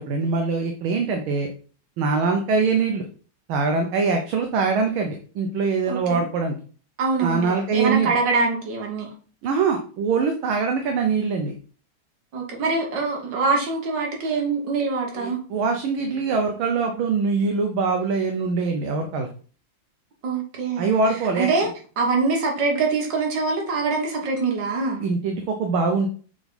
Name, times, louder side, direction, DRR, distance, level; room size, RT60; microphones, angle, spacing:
voice 1, 0.0-1.5 2.0-3.0 3.5-6.6 7.2-8.2 9.4-11.5 15.2-19.3 20.8-21.5 25.0-26.1, right 4 dB, 75° right, 4 dB, 1.5 m, -23 dB
voice 2, 5.9-6.2 7.0-9.1 12.3-15.4 20.2-21.0 21.4-21.7 22.0-25.0, right 4 dB, 55° right, 0 dB, 2.0 m, -24 dB
6.8 x 3.6 x 4.0 m, 0.41 s
omnidirectional pair, 2.4 m